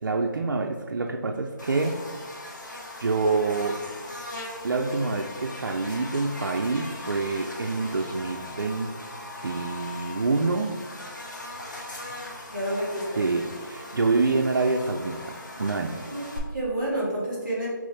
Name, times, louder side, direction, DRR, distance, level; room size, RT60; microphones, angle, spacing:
voice 1, 0.0-2.0 3.0-3.8 4.6-8.9 9.4-10.8 13.2-16.1, right 3 dB, 75° right, 2 dB, 0.4 m, -26 dB
Buzz, 1.6-16.4, left 2 dB, 65° left, 1.3 m, -39 dB
voice 2, 12.5-13.0 16.1-17.7, right 1 dB, 5° left, -16 dB, 1.0 m, -29 dB
5.2 x 3.1 x 3.3 m, 1.4 s
figure-of-eight pair, 175°, 11 cm